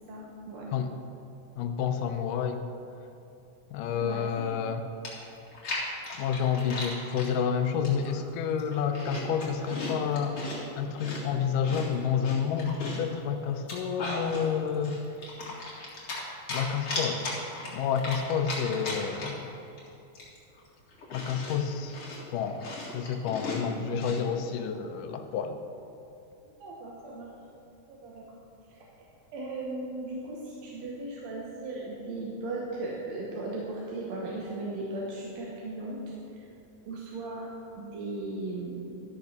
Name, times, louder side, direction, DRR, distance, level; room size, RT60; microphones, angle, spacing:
voice 1, 0.1-0.7 4.0-4.5 23.6-24.2 26.4-27.3 27.9-28.4 28.7-28.8 29.3-36.0 36.3-36.5 36.9-37.5 37.8-39.0, right 2 dB, 65° right, -4 dB, 2.2 m, -37 dB
voice 2, 1.6-2.6 3.7-4.8 6.2-10.4 10.8-15.0 16.5-17.3 17.7-19.5 21.1-22.0 22.3-22.6 22.9-25.6, left 7 dB, 85° left, 7 dB, 2.3 m, -29 dB
Chewing mastication, 5.1-7.3 7.8-8.2 8.5-10.6 11.0-13.1 13.5-14.5 14.8-16.2 16.5-19.5 19.8-19.9 20.2-24.2, left 3 dB, 45° left, 2.9 m, -37 dB
13.0 x 6.6 x 5.8 m, 2.7 s
omnidirectional pair, 3.7 m